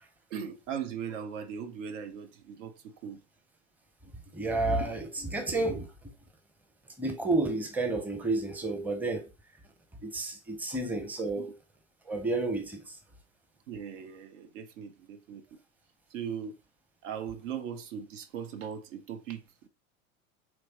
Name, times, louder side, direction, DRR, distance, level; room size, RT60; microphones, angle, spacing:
voice 1, 0.3-3.2 11.4-11.5 13.7-15.6 16.1-16.6 17.0-19.7, right 8 dB, 60° right, 0.8 m, -39 dB
voice 2, 4.3-6.1 7.0-9.3 10.0-11.5 12.1-13.0, right 2 dB, 5° right, 0.7 m, -31 dB
4.5 x 3.2 x 2.8 m
figure-of-eight pair, 80°, 42 cm